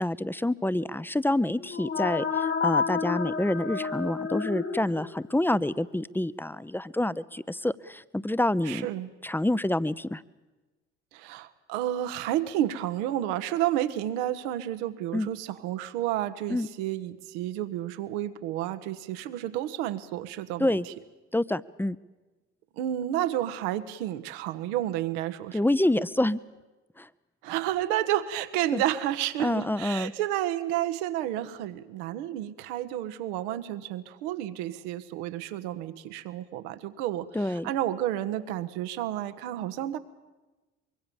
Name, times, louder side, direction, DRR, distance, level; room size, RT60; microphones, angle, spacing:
voice 1, 0.0-8.9 9.2-10.2 15.1-15.3 16.5-16.7 20.6-20.9 21.3-22.0 25.5-26.4 27.0-27.1 28.7-28.8 29.4-30.1 37.3-37.7, left 1 dB, 5° left, 17 dB, 0.8 m, -27 dB
sound 1, 1.6-5.4, left 6 dB, 35° left, 1.9 m, -30 dB
voice 2, 8.6-9.1 11.1-20.9 22.8-25.6 27.4-40.0, right 12 dB, 75° right, 11 dB, 1.4 m, -31 dB
24.5 x 23.0 x 7.2 m, 1.2 s
hypercardioid pair, 60°, 34 cm